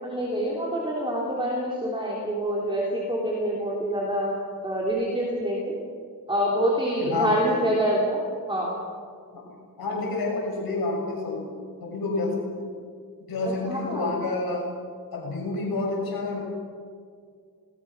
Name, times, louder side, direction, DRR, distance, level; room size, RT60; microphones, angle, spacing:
voice 1, 0.0-4.3 4.6-5.7 6.3-8.2 8.5-8.8 13.6-14.1, right 1 dB, 15° right, -4 dB, 3.6 m, -26 dB
voice 2, 7.0-7.6 9.3-9.4 9.8-11.5 11.8-12.7 13.3-14.7 15.1-16.4, left 3 dB, 80° left, -2 dB, 6.9 m, -28 dB
27.5 x 20.0 x 6.2 m, 2.1 s
wide cardioid pair, 170°, 36 cm